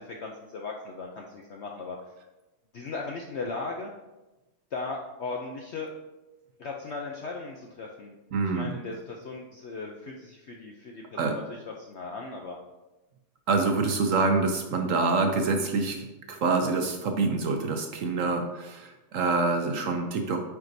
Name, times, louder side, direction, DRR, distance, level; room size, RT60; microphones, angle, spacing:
voice 1, 0.0-2.0 2.7-3.9 4.7-5.9 6.6-8.1 8.5-12.6 13.5-13.6, left 3 dB, 65° left, 0 dB, 0.6 m, -37 dB
voice 2, 8.3-8.7 11.2-11.3 13.5-20.4, right 3 dB, 65° right, 4 dB, 0.9 m, -26 dB
9.1 x 4.7 x 2.6 m, 1.1 s
omnidirectional pair, 1.7 m